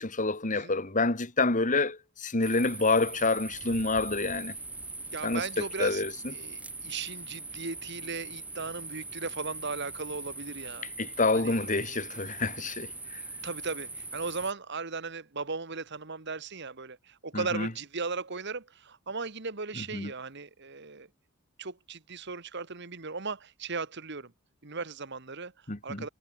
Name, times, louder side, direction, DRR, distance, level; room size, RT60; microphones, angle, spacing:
voice 1, 0.0-4.5 5.2-5.4 5.8-6.1 11.0-13.2 17.3-17.7 19.9-20.1 25.7-26.0, left 3 dB, 40° left, 2.0 m, -28 dB
sound 1, 2.4-14.5, right 2 dB, 5° right, 1.3 m, -41 dB
voice 2, 5.1-6.0 6.3-10.9 11.3-11.6 13.4-21.1 21.6-24.3 24.6-25.5 25.8-26.1, right 4 dB, 55° right, 1.7 m, -37 dB
head